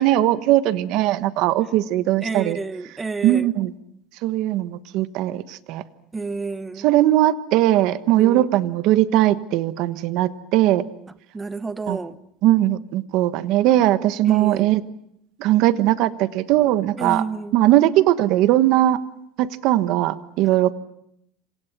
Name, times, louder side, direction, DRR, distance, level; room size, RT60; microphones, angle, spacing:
voice 1, 0.0-2.6 3.2-3.7 4.2-5.8 6.8-10.9 11.9-12.0 12.4-14.8 15.4-17.2 17.5-19.0 19.4-20.7, right 14 dB, 60° right, 1.2 m, -19 dB
voice 2, 2.2-3.5 6.1-6.9 8.1-8.5 11.3-12.2 14.3-14.7 17.0-17.6, right 4 dB, 15° right, 0.9 m, -29 dB
27.5 x 26.5 x 6.1 m
cardioid pair, 145°, 0 cm